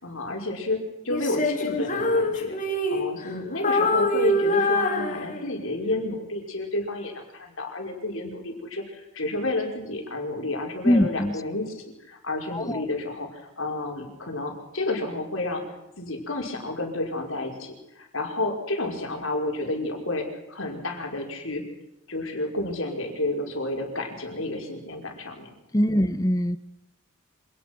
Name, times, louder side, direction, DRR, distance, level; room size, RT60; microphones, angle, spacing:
voice 1, 0.0-2.6 2.9-15.6 16.0-21.6 22.1-25.5 25.9-26.0, left 2 dB, 65° left, 2 dB, 5.3 m, -31 dB
Female singing, 1.1-3.3 3.6-5.7, left 1 dB, 35° left, 3.3 m, -25 dB
voice 2, 10.8-11.4 12.5-12.8 25.7-26.6, equal, 15° left, 15 dB, 0.9 m, -22 dB
26.5 x 18.5 x 6.2 m, 0.89 s
head